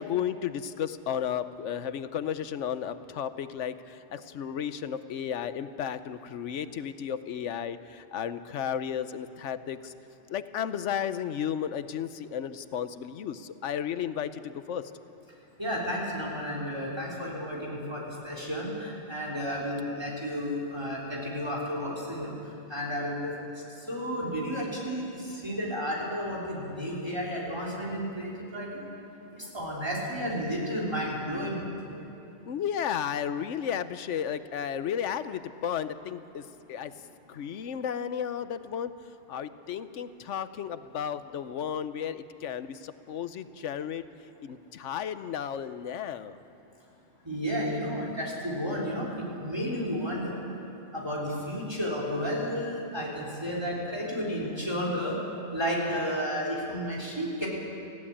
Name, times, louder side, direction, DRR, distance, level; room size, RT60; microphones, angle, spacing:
voice 1, 0.0-9.9 10.3-14.9 32.5-36.4 36.7-36.9 37.3-38.9 39.3-44.0 44.4-46.4, left 8 dB, 90° left, 12 dB, 1.1 m, -33 dB
voice 2, 15.6-28.8 29.3-32.0 47.2-50.4 50.9-55.2 55.5-57.5, equal, 20° right, -4 dB, 3.5 m, -32 dB
20.0 x 15.5 x 8.7 m, 2.7 s
omnidirectional pair, 1.2 m